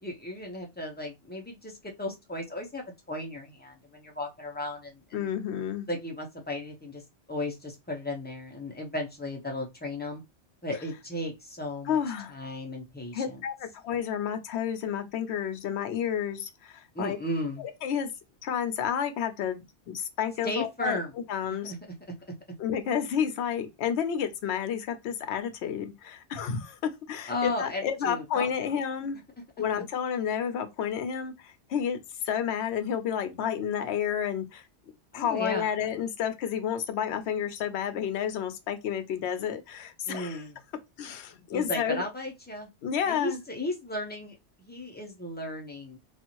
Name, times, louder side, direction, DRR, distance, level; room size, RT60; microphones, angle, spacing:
voice 1, 0.0-5.3 5.9-7.0 7.3-10.2 10.6-12.0 12.3-13.4 16.9-17.6 20.4-21.1 21.7-21.8 27.3-28.7 35.1-35.7 40.1-40.5 41.5-42.7 43.1-46.0, left 1 dB, 10° left, 0.6 m, -35 dB
voice 2, 5.1-5.9 11.9-12.3 13.1-17.2 17.6-18.1 18.4-21.0 21.3-21.7 22.6-29.2 29.6-32.0 32.2-34.7 35.1-40.4 41.0-42.0 42.8-43.4, left 8 dB, 70° left, 0.9 m, -30 dB
2.6 x 2.4 x 2.9 m
omnidirectional pair, 1.2 m